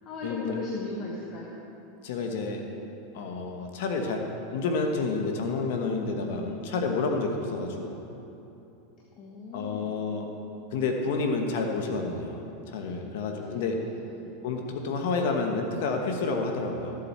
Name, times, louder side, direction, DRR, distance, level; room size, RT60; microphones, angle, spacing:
voice 1, 0.0-1.5 9.2-10.0 13.3-13.7 14.1-14.3, left 3 dB, 40° left, -3 dB, 1.5 m, -37 dB
voice 2, 2.0-2.6 3.1-4.3 4.5-8.0 9.5-10.3 10.7-13.8 14.4-17.0, left 3 dB, 70° left, 3 dB, 1.2 m, -29 dB
14.5 x 7.6 x 4.3 m, 2.9 s
hypercardioid pair, 115°, 0 cm